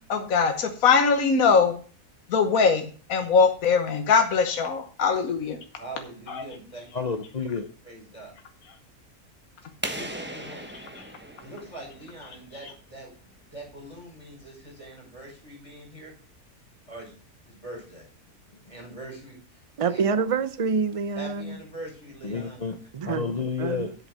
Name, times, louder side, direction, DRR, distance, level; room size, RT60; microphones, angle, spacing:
voice 1, 0.1-1.8 2.3-5.6 6.3-6.4 10.9-11.0, left 5 dB, 70° left, 1.5 m, -21 dB
voice 2, 5.8-6.9 7.8-8.3 9.9-10.7 11.4-16.1 16.9-17.1 17.6-18.1 18.7-19.4 19.9-20.0 21.2-22.6, right 1 dB, 20° left, 5.4 m, -42 dB
voice 3, 6.9-7.7 22.2-22.8 23.1-23.9, left 5 dB, 45° left, 0.5 m, -30 dB
sound 1, 9.8-12.5, right 1 dB, 10° right, 1.1 m, -37 dB
voice 4, 19.8-21.6 22.9-23.2 23.6-23.9, right 5 dB, 55° right, 0.3 m, -26 dB
8.1 x 6.9 x 6.2 m
omnidirectional pair, 1.5 m